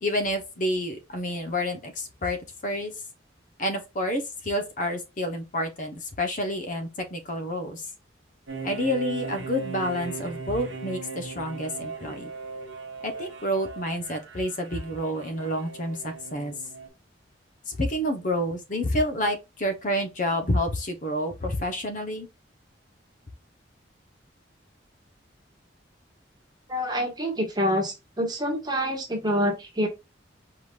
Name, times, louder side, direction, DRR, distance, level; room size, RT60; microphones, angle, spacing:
voice 1, 0.0-2.9 3.6-7.8 8.6-12.3 13.0-16.5 17.7-22.3, equal, 40° left, 0.9 m, -29 dB
sound 1, 8.5-16.9, right 4 dB, 80° right, 1.3 m, -38 dB
voice 2, 26.7-29.9, equal, 20° right, 1.3 m, -26 dB
4.9 x 3.8 x 2.4 m
head